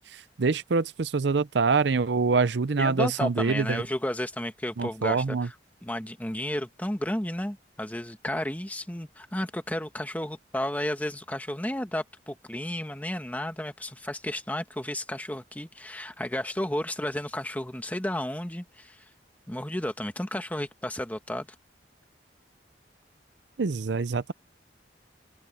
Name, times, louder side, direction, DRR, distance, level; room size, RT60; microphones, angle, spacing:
voice 1, 0.0-3.8 4.8-5.5 23.6-24.3, right 4 dB, 70° right, 0.6 m, -25 dB
voice 2, 2.8-5.5 5.8-19.1 19.5-21.5, left 1 dB, 10° left, 1.4 m, -32 dB
head